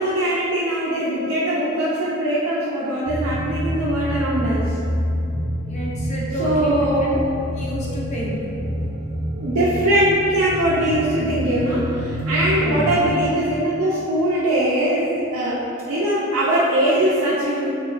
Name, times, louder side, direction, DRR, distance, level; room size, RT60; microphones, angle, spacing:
voice 1, 0.0-4.7 6.4-7.2 7.8-8.0 8.3-8.8 9.3-17.7, right 1 dB, 80° right, -7 dB, 0.4 m, -21 dB
sound 1, 3.0-13.1, equal, 85° left, 0.9 m, -27 dB
voice 2, 5.7-6.9 7.5-8.4 12.6-13.0, right 1 dB, 35° left, -4 dB, 0.4 m, -30 dB
2.8 x 2.2 x 2.3 m, 2.6 s
head